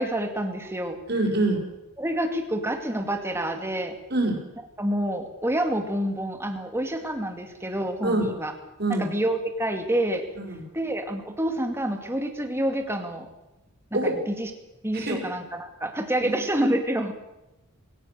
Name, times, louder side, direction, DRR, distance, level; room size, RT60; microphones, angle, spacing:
voice 1, 0.0-1.0 2.0-4.0 4.8-8.5 8.9-10.2 10.7-13.3 13.9-14.5 14.8-17.1, right 1 dB, 10° right, 5 dB, 2.2 m, -28 dB
voice 2, 1.1-1.6 4.1-4.3 8.0-8.3 8.8-9.1 10.5-10.6 13.9-14.1 15.1-15.2 16.2-16.4, right 2 dB, 50° right, 1 dB, 5.3 m, -24 dB
21.0 x 18.0 x 6.8 m, 0.96 s
head